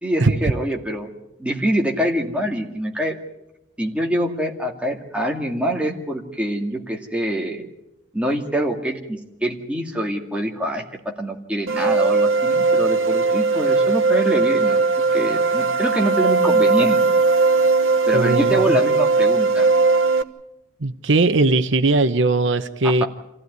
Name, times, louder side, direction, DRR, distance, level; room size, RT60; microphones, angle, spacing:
voice 1, 0.0-1.1 1.4-3.2 3.8-7.6 8.1-10.8 11.2-14.8 15.1-17.0 18.1-19.7 22.8-23.1, right 1 dB, 5° right, 0 dB, 2.2 m, -25 dB
sound 1, 11.7-20.2, right 3 dB, 85° right, 1.1 m, -18 dB
voice 2, 18.1-18.6 20.8-23.0, right 3 dB, 70° right, 10 dB, 0.9 m, -19 dB
26.5 x 16.0 x 9.5 m, 0.92 s
head